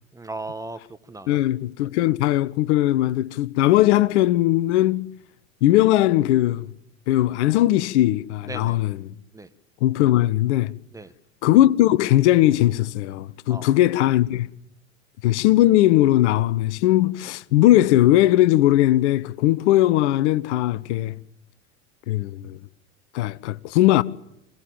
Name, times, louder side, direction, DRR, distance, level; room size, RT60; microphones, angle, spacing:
voice 1, 0.1-1.4 8.5-8.8 9.3-9.5 10.9-11.1 13.5-13.8, right 2 dB, 10° right, 1.5 m, -37 dB
voice 2, 1.3-5.1 5.6-6.7 7.1-9.1 9.8-10.7 11.4-14.5 15.2-21.1 22.1-22.6 23.1-24.0, left 14 dB, 60° left, 1.0 m, -19 dB
26.5 x 17.5 x 8.9 m
hypercardioid pair, 80°, 38 cm